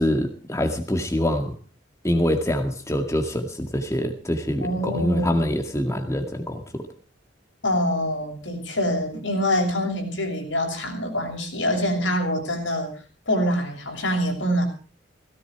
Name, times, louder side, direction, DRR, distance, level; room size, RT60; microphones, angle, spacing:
voice 1, 0.0-1.5 2.0-6.8, left 1 dB, 15° left, 6 dB, 2.1 m, -25 dB
voice 2, 4.6-5.4 7.6-12.9 13.3-14.7, equal, 85° left, 3 dB, 6.9 m, -25 dB
17.5 x 17.5 x 4.7 m, 0.39 s
head